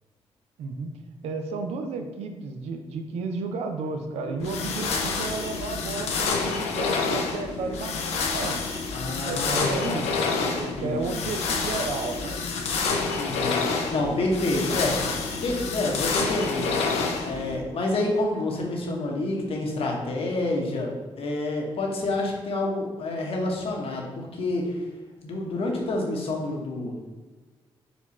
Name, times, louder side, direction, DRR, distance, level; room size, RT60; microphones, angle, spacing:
voice 1, 0.6-1.0 1.2-8.5 9.2-10.0 10.4-12.4 14.5-14.6, right 4 dB, 85° right, 6 dB, 0.5 m, -32 dB
voice 2, 4.3-4.6 8.9-10.1 10.6-11.2 13.1-15.0 15.3-16.7 17.2-20.9 21.2-24.9 25.2-27.0, left 2 dB, 65° left, 0 dB, 1.0 m, -28 dB
sound 1, 4.4-17.6, left 4 dB, 90° left, 0.5 m, -28 dB
4.2 x 2.4 x 4.2 m, 1.3 s
cardioid pair, 65°, 10 cm